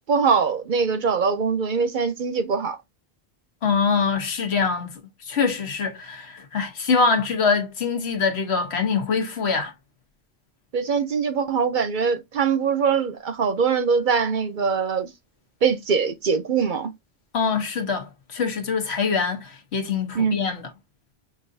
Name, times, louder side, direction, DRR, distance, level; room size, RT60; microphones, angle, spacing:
voice 1, 0.1-2.8 10.7-15.1 15.6-16.9 20.1-20.4, right 5 dB, 55° right, 0.7 m, -22 dB
voice 2, 3.6-9.7 17.3-20.6, left 5 dB, 80° left, 1.3 m, -24 dB
6.0 x 2.6 x 2.6 m
omnidirectional pair, 1.1 m